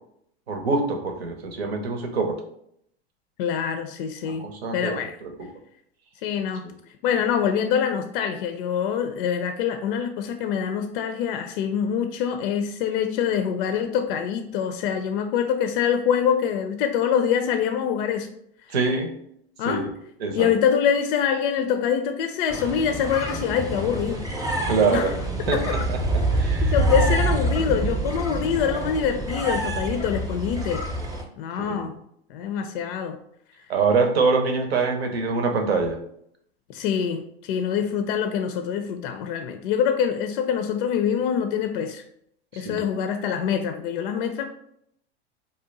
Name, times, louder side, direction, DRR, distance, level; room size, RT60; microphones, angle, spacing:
voice 1, 0.5-2.4 4.2-5.5 18.7-19.1 19.6-19.9 20.2-20.5 24.7-25.2 25.5-26.8 31.6-31.9 33.7-36.0 42.5-42.8, right 4 dB, 85° right, 4 dB, 0.8 m, -25 dB
voice 2, 3.4-5.1 6.2-6.6 7.0-18.3 19.6-19.9 20.3-24.2 24.8-25.1 25.5-25.8 26.6-30.9 31.4-32.0 32.3-33.2 36.7-42.0 42.6-44.4, left 8 dB, 65° left, 7 dB, 0.4 m, -25 dB
sound 1, 22.5-31.2, right 1 dB, 10° right, 0.7 m, -26 dB
2.7 x 2.2 x 3.8 m, 0.71 s
hypercardioid pair, 90°, 31 cm